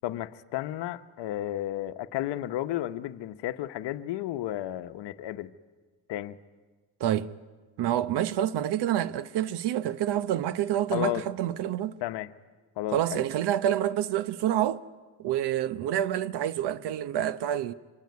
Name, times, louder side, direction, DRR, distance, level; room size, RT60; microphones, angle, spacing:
voice 1, 0.0-5.5 6.1-6.4 10.9-11.3 12.0-12.3 12.8-13.2, left 14 dB, 70° left, 1.0 m, -33 dB
voice 2, 7.8-12.0 12.9-14.8 15.2-17.7, right 11 dB, 65° right, 0.9 m, -28 dB
25.5 x 22.0 x 9.4 m
cardioid pair, 110°, 43 cm